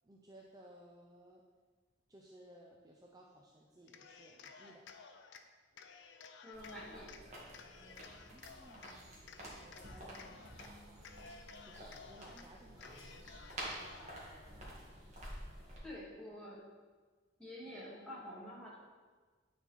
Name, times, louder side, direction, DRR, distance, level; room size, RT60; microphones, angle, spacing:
voice 1, 0.0-1.4 2.1-4.8 8.1-9.2 9.6-11.2 11.6-14.8, right 1 dB, 20° right, -2 dB, 0.5 m, -60 dB
Cheering, 3.8-5.4 5.8-7.2 7.5-8.9 9.3-10.7 11.0-12.4 12.8-14.2, left 5 dB, 65° left, 0.5 m, -55 dB
voice 2, 6.4-7.2 12.3-12.4 15.8-16.6 17.4-18.8, left 1 dB, 5° left, -7 dB, 1.9 m, -48 dB
sound 1, 6.5-15.8, right 1 dB, 35° right, 1.8 m, -50 dB
9.5 x 4.2 x 4.2 m, 1.4 s
head